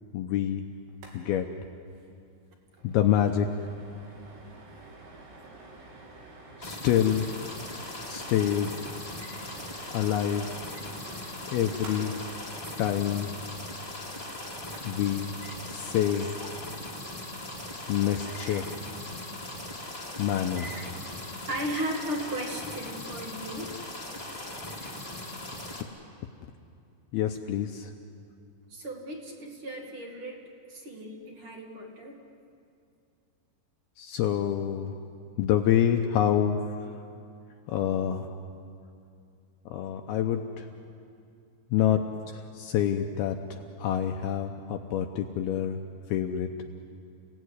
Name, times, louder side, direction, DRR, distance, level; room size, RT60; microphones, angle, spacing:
voice 1, 0.1-0.6 1.1-1.5 2.8-3.5 6.6-7.3 8.1-8.8 9.9-10.5 11.5-12.1 12.8-13.3 14.8-15.4 15.7-16.3 17.9-18.6 20.2-20.8 27.1-27.9 34.0-34.9 35.4-36.6 37.7-38.3 39.7-40.7 41.7-42.0 42.3-43.4 43.8-45.8 46.1-46.5, left 10 dB, 80° left, 5 dB, 2.4 m, -26 dB
sound 1, 0.9-1.2 1.4-1.5 1.9-2.1 2.4-15.1, right 2 dB, 80° right, 5.8 m, -50 dB
sound 2, 6.6-25.8, left 1 dB, 10° left, 1.6 m, -39 dB
voice 2, 18.2-18.6 20.6-20.9 21.5-23.8 24.7-25.1 28.7-30.4 30.7-32.2, right 1 dB, 40° right, 2 dB, 2.1 m, -36 dB
30.0 x 17.5 x 9.6 m, 2.5 s
omnidirectional pair, 5.2 m